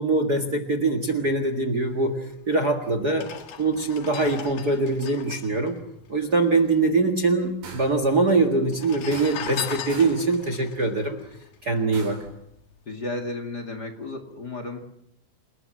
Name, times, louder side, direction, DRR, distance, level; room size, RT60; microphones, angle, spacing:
voice 1, 0.0-3.3 3.6-5.7 6.1-11.2 11.6-12.2, right 3 dB, 35° right, 9 dB, 1.9 m, -23 dB
sound 1, 2.4-2.5 3.0-6.7 7.0-7.1 7.2-7.9 8.6-12.1 12.6-12.8, left 8 dB, 80° left, 3.5 m, -38 dB
sound 2, 7.6-8.1 9.1-9.6 9.9-10.3 11.9-12.4, right 4 dB, 70° right, 4.7 m, -41 dB
voice 2, 12.9-14.8, left 2 dB, 35° left, 4 dB, 2.4 m, -33 dB
29.0 x 19.0 x 7.7 m, 0.79 s
omnidirectional pair, 3.7 m